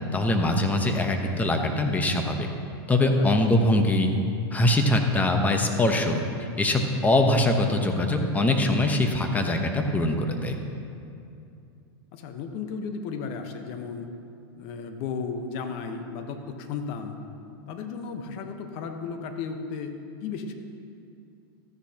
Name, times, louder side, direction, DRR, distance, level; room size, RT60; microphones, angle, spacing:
voice 1, 0.1-2.5 2.9-4.1 4.5-10.6, left 1 dB, 10° left, 4 dB, 0.9 m, -23 dB
voice 2, 12.1-14.1 14.5-17.2 17.7-19.9 20.2-20.5, left 5 dB, 50° left, 6 dB, 1.1 m, -34 dB
13.5 x 10.0 x 2.9 m, 2.6 s
hypercardioid pair, 130°, 13 cm